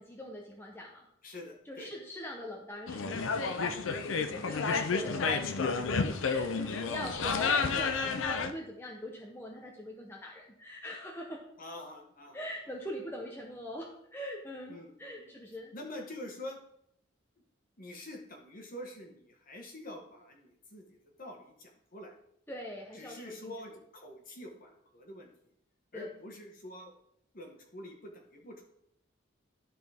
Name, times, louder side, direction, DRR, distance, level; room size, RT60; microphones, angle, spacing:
voice 1, 0.0-1.1 1.6-11.4 12.3-15.7 22.5-23.5 25.9-26.1, equal, 10° left, -1 dB, 0.8 m, -43 dB
voice 2, 1.2-1.9 11.6-12.5 14.7-15.3 15.7-16.6 17.8-22.1 22.9-25.3 25.9-26.9 27.3-28.7, left 1 dB, 45° left, 2 dB, 1.4 m, -46 dB
sound 1, 2.9-8.5, left 4 dB, 70° left, 0.5 m, -31 dB
12.0 x 4.2 x 3.4 m, 0.73 s
head